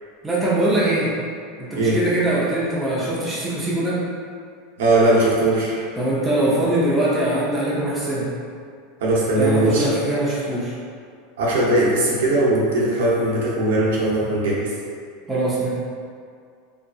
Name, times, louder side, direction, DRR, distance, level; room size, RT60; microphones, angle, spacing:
voice 1, 0.2-1.1 1.6-4.0 6.0-8.3 9.4-10.7 15.3-15.7, right 1 dB, 5° right, -9 dB, 0.5 m, -22 dB
voice 2, 4.8-5.9 9.0-9.9 11.4-14.7, right 1 dB, 90° right, -5 dB, 0.7 m, -19 dB
2.7 x 2.4 x 2.3 m, 2.2 s
supercardioid pair, 160°, 0 cm